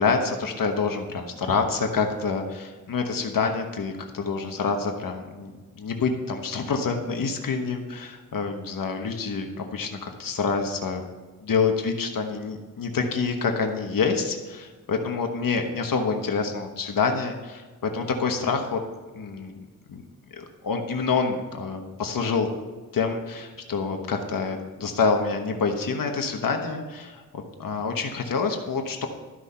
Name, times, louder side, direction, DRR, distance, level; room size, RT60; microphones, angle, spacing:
voice 1, 0.0-11.0 11.4-18.8 19.1-19.6 19.9-20.0 20.3-22.5 22.9-29.1, left 5 dB, 70° left, 4 dB, 1.2 m, -27 dB
13.0 x 6.2 x 5.7 m, 1.3 s
wide cardioid pair, 130°, 34 cm